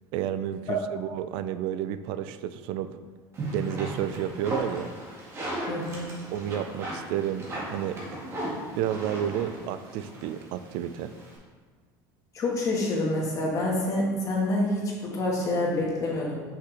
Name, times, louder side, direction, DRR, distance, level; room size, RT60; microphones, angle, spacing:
voice 1, 0.1-2.9 3.5-4.9 6.3-8.0 8.7-11.1, right 10 dB, 70° right, 12 dB, 0.4 m, -31 dB
sound 1, 3.3-11.4, right 1 dB, 30° right, 1.9 m, -36 dB
voice 2, 5.7-6.1 12.3-16.4, left 1 dB, 40° left, -3 dB, 1.6 m, -27 dB
5.8 x 5.6 x 3.4 m, 1.5 s
cardioid pair, 130°, 9 cm